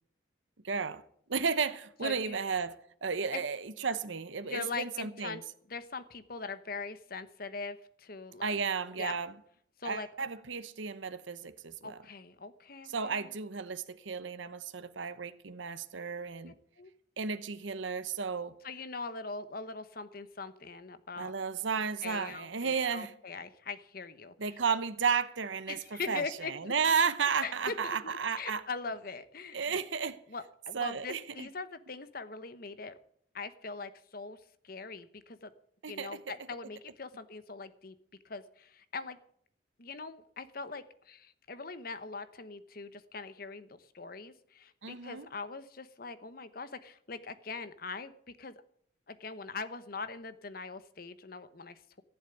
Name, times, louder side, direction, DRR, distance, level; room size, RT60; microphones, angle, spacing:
voice 1, 0.6-1.0 1.3-2.8 3.0-5.4 8.4-9.3 9.8-12.0 12.9-16.5 17.2-18.6 21.2-23.1 24.4-28.6 29.5-30.2 30.7-31.5 35.8-36.2 44.8-45.3, right 5 dB, 85° right, 0.9 m, -33 dB
voice 2, 2.0-2.3 3.3-3.4 4.4-5.4 5.7-8.6 9.0-9.2 9.8-10.1 11.8-13.3 16.8-16.9 18.6-21.3 22.0-24.3 25.7-26.7 27.4-29.8 30.3-32.9 33.3-34.4 34.6-35.5 35.9-37.9 38.2-39.2 39.8-48.5 49.1-52.0, left 4 dB, 50° left, 1.0 m, -41 dB
15.5 x 7.3 x 9.2 m
head